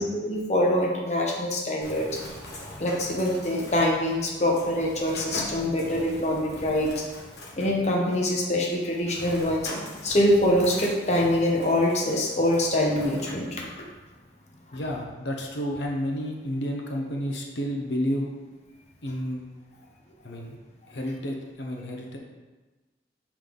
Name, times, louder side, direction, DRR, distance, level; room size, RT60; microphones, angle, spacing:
voice 1, 0.0-2.2 2.8-6.9 7.6-9.7 10.0-13.7, left 1 dB, 40° left, -1 dB, 0.9 m, -24 dB
Bird, 1.8-13.3, left 1 dB, 70° left, 1.1 m, -42 dB
voice 2, 14.7-18.3 19.0-19.5 20.2-20.6 20.9-22.2, equal, 85° left, 1 dB, 0.8 m, -31 dB
5.4 x 5.0 x 3.8 m, 1.2 s
head